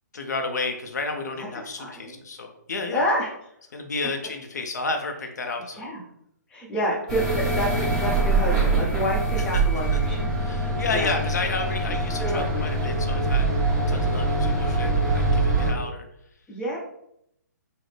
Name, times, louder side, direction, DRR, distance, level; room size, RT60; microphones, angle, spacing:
voice 1, 0.1-3.0 3.7-5.9 9.5-9.6 9.9-10.0 10.4-13.5 13.9-16.1, left 3 dB, 70° left, 4 dB, 0.5 m, -31 dB
voice 2, 1.8-2.2 2.9-3.3 5.7-6.0 6.5-10.2 10.9-11.1 12.2-12.7 16.5-16.8, equal, 10° left, -4 dB, 0.7 m, -28 dB
sound 1, 7.1-15.7, right 2 dB, 15° right, 1.4 m, -24 dB
3.9 x 2.0 x 3.2 m, 0.75 s
hypercardioid pair, 140°, 10 cm